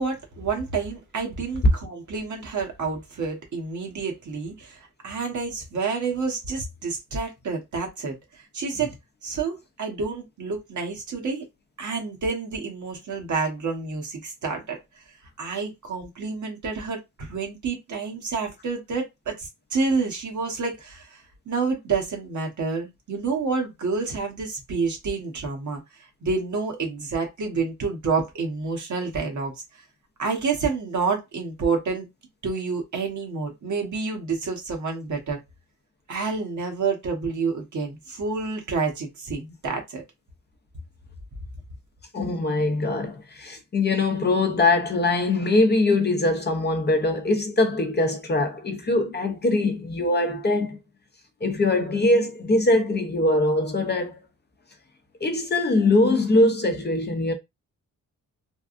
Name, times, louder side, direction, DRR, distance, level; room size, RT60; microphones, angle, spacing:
voice 1, 0.0-8.9 9.2-11.4 11.8-15.0 15.4-29.8 30.2-32.1 32.4-35.4 36.1-40.0, right 4 dB, 60° right, 1.3 m, -29 dB
voice 2, 42.1-50.8 51.4-54.2 55.2-57.3, left 2 dB, 30° left, 0.7 m, -22 dB
3.4 x 2.3 x 2.5 m
cardioid pair, 105°, 33 cm